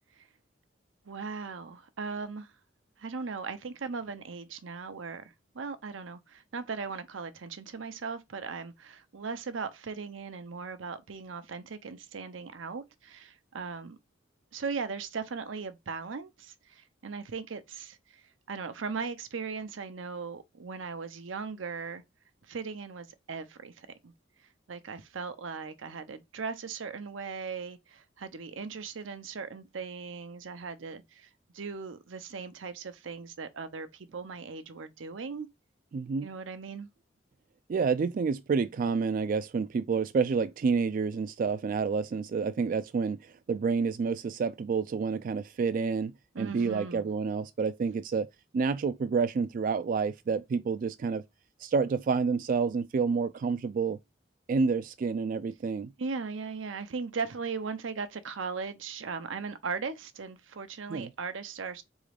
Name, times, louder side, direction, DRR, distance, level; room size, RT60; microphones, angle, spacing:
voice 1, 1.1-2.5 3.0-14.0 14.5-18.2 18.5-22.0 22.5-24.1 24.7-35.5 36.2-36.9 46.3-47.1 56.0-61.8, right 5 dB, 85° right, 0.7 m, -38 dB
voice 2, 35.9-36.3 37.7-43.2 43.5-46.1 46.4-48.3 48.5-51.2 51.6-54.0 54.5-55.9 60.9-61.1, right 5 dB, 45° right, 0.3 m, -29 dB
4.0 x 3.6 x 3.4 m
head